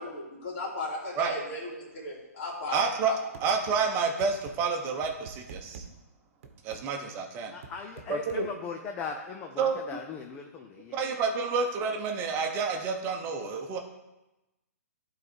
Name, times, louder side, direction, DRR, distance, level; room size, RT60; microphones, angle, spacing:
voice 1, 0.0-3.2, left 2 dB, 50° left, -4 dB, 3.3 m, -36 dB
voice 2, 2.7-3.1 3.4-5.8 6.6-7.6 8.1-8.5 9.6-9.8 10.9-13.8, right 5 dB, 25° right, 4 dB, 1.0 m, -29 dB
sound 1, 3.3-3.8 4.2-4.5 5.0-5.9 6.4-6.8 7.6-8.4, right 6 dB, 50° right, 1.1 m, -45 dB
voice 3, 7.5-11.0, left 5 dB, 20° left, 3 dB, 0.6 m, -39 dB
12.0 x 4.0 x 4.5 m, 1.0 s
hypercardioid pair, 140°, 9 cm